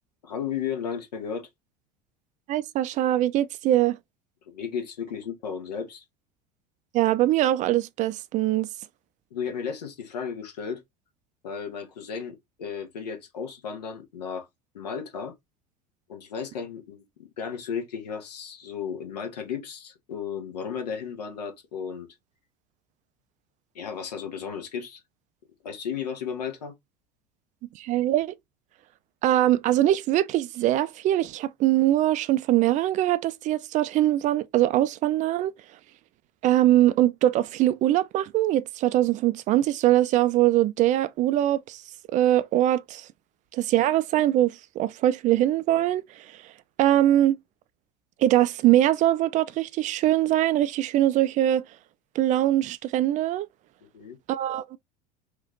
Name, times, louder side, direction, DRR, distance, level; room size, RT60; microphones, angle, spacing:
voice 1, 0.2-1.5 4.5-6.0 9.3-10.8 11.4-14.5 14.7-15.3 16.1-22.1 23.7-25.0 25.6-26.7 53.9-54.2, left 7 dB, 75° left, 1.0 m, -34 dB
voice 2, 2.5-4.0 6.9-8.7 27.8-28.3 29.2-35.5 36.4-41.8 42.1-43.1 43.5-46.0 46.8-47.4 48.2-51.6 52.2-53.5 54.3-54.8, right 13 dB, 35° right, 0.4 m, -22 dB
3.0 x 2.4 x 3.7 m
figure-of-eight pair, 70°, 21 cm